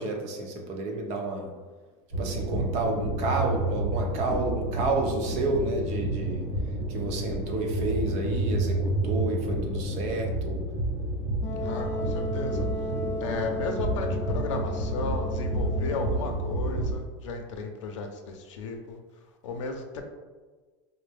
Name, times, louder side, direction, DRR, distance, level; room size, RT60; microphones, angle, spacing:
voice 1, 0.0-1.5 2.2-6.5 6.9-10.6, right 2 dB, 50° right, 2 dB, 0.7 m, -30 dB
sound 1, 2.1-16.9, right 1 dB, 80° right, 1.2 m, -30 dB
Wind instrument woodwind instrument, 11.4-16.2, left 2 dB, 15° left, 0.5 m, -35 dB
voice 2, 11.6-12.7 13.2-19.0 19.4-20.0, left 3 dB, 90° left, 4 dB, 0.6 m, -34 dB
4.3 x 2.1 x 3.3 m, 1.4 s
supercardioid pair, 130°, 15 cm